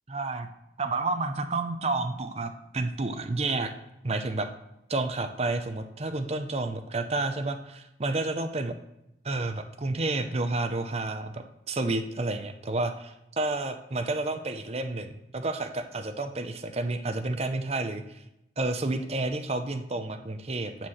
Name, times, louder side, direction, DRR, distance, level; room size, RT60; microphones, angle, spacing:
voice 1, 0.1-0.5 0.8-3.7 4.0-4.5 4.9-8.8 9.2-18.2 18.6-20.9, right 2 dB, 35° right, 7 dB, 0.7 m, -30 dB
9.0 x 4.7 x 7.2 m, 0.86 s
head